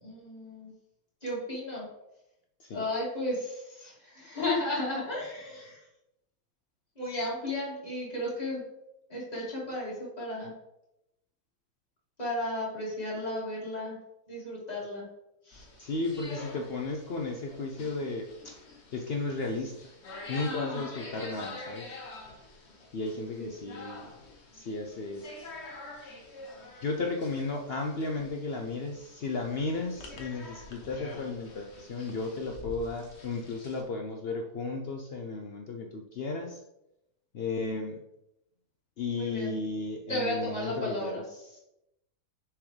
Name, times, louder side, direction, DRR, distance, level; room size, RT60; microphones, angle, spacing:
voice 1, 0.0-0.7 1.2-1.9 2.7-5.8 7.0-8.6 9.1-10.5 12.2-14.0 14.3-15.1 15.4-15.6 20.5-20.8 23.4-23.7 39.1-39.5 40.1-41.2, left 1 dB, 25° left, -6 dB, 2.4 m, -34 dB
sound 1, 15.5-33.8, left 2 dB, 45° left, 1.2 m, -46 dB
voice 2, 15.8-18.6 18.9-19.9 20.3-21.9 22.9-24.1 24.5-25.3 26.1-26.2 26.8-36.6 37.3-38.0 39.0-41.6, left 3 dB, 70° left, 3 dB, 0.5 m, -34 dB
6.9 x 4.7 x 3.2 m, 0.86 s
omnidirectional pair, 1.8 m